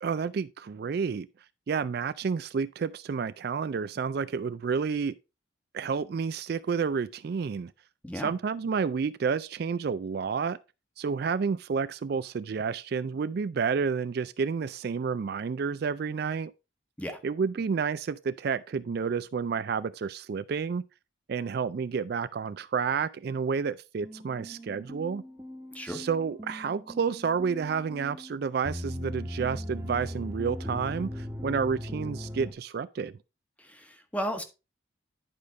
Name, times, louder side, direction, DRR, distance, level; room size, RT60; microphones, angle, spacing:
voice 1, 0.0-1.3 1.7-5.2 5.7-7.7 8.1-10.6 11.0-16.5 17.2-20.8 21.3-25.2 25.9-33.1, right 5 dB, 50° right, 0.3 m, -30 dB
sound 1, 24.0-32.5, equal, 10° right, 1.1 m, -39 dB
voice 2, 33.6-34.4, equal, 5° left, 1.0 m, -34 dB
10.5 x 5.0 x 3.9 m
head